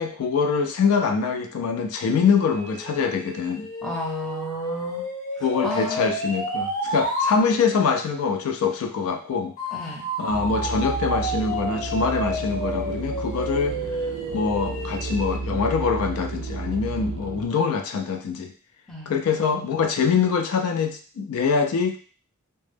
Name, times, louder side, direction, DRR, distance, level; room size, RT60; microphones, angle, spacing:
voice 1, 0.0-3.7 5.4-9.5 10.2-13.8 14.3-18.5 19.1-22.0, left 5 dB, 80° left, 6 dB, 0.3 m, -24 dB
sound 1, 2.2-7.4 9.6-15.4, equal, 40° left, 0.8 m, -31 dB
voice 2, 3.8-5.0 5.6-6.1 9.7-10.0 18.9-19.1, left 1 dB, ahead, -3 dB, 0.5 m, -32 dB
sound 2, 10.3-17.5, right 4 dB, 75° right, 0.4 m, -32 dB
2.1 x 2.0 x 3.2 m, 0.41 s
head